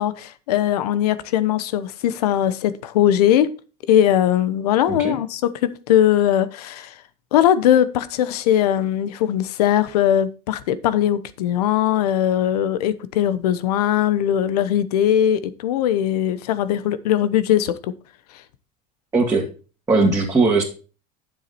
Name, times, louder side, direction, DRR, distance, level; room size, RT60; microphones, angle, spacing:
voice 1, 0.0-3.5 3.9-6.9 7.3-17.9 20.0-20.1, left 11 dB, 85° left, 1.0 m, -20 dB
voice 2, 19.1-19.4 19.9-20.6, right 3 dB, 15° right, 2.7 m, -18 dB
9.4 x 7.5 x 4.2 m
supercardioid pair, 100°, 20 cm